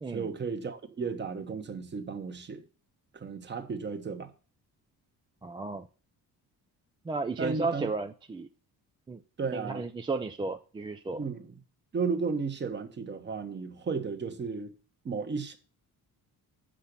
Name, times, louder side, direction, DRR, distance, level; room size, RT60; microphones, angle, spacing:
voice 1, 0.1-2.6 3.1-4.3 7.4-7.9 9.4-9.9 11.1-11.6 11.9-14.7 15.0-15.6, right 5 dB, 30° right, 1.1 m, -34 dB
voice 2, 5.4-5.9 7.1-8.5 9.1-9.2 9.5-11.2, right 3 dB, 15° right, 0.3 m, -33 dB
7.6 x 5.7 x 6.6 m
cardioid pair, 155°, 37 cm